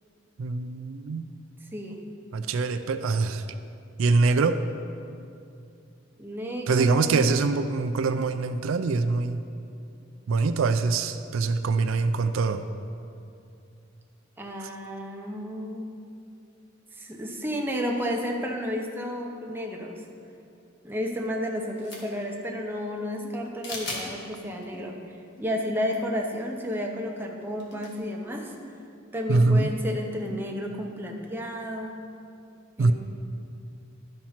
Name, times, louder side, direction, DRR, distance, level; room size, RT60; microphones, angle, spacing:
voice 1, 0.4-1.3 2.3-3.4 4.0-4.6 6.7-9.4 10.3-12.6 14.6-14.7 29.3-29.7 32.8-32.9, right 3 dB, 90° right, 10 dB, 0.4 m, -24 dB
voice 2, 1.7-2.0 6.2-7.3 14.4-15.9 17.0-20.0 20.8-28.6 29.1-31.9 32.8-32.9, equal, 10° right, 0 dB, 0.8 m, -32 dB
sound 1, 21.8-22.3 23.6-24.1 24.6-24.7 25.8-26.0 26.2-26.3 27.6-28.0, left 2 dB, 60° left, 1.5 m, -36 dB
sound 2, 23.2-23.4 24.0-24.2 24.7-24.9 25.4-25.6 26.5-26.7 27.7-27.9 28.5-28.7 29.4-29.5 30.3-30.5, left 1 dB, 75° left, 1.3 m, -49 dB
11.5 x 4.5 x 5.7 m, 2.5 s
head